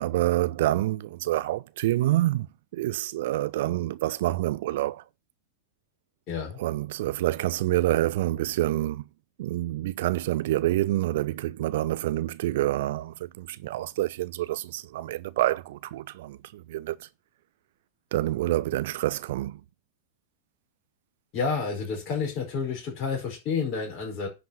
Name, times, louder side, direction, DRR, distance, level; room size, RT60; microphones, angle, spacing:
voice 1, 0.0-2.5 2.7-5.0 6.6-9.0 9.4-17.1 18.1-19.6, right 15 dB, 55° right, 0.5 m, -27 dB
voice 2, 6.3-6.6 21.3-24.3, left 5 dB, 40° left, 4.7 m, -30 dB
10.5 x 5.1 x 5.8 m
figure-of-eight pair, 90°, 0 cm